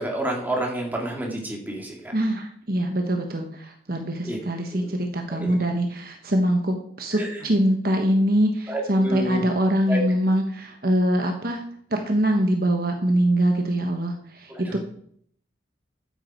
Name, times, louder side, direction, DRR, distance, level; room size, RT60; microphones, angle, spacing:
voice 1, 0.0-2.0 4.2-4.4 4.7-4.9 5.3-5.5 7.1-7.3 8.7-9.4 9.9-10.0 14.7-14.8, right 1 dB, 10° right, -1 dB, 2.9 m, -29 dB
voice 2, 2.1-11.6 11.9-14.8, right 1 dB, 50° right, 4 dB, 1.3 m, -23 dB
13.0 x 9.7 x 4.6 m, 0.63 s
head